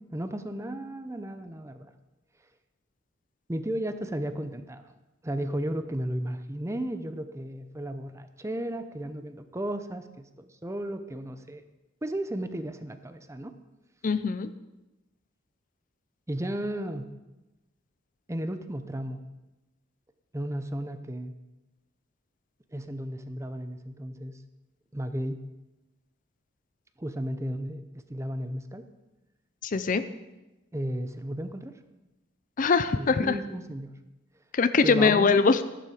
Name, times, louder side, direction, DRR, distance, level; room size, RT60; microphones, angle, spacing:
voice 1, 0.1-1.9 3.5-4.9 5.2-11.6 12.0-13.5 16.3-17.1 18.3-19.2 20.3-21.3 22.7-24.4 24.9-25.4 27.0-28.8 30.7-31.7 32.9-33.9 34.8-35.4, right 1 dB, 15° right, 9 dB, 0.7 m, -34 dB
voice 2, 14.0-14.5 29.6-30.0 32.6-33.3 34.5-35.6, left 4 dB, 40° left, 12 dB, 0.5 m, -22 dB
12.5 x 11.5 x 5.0 m, 1.0 s
head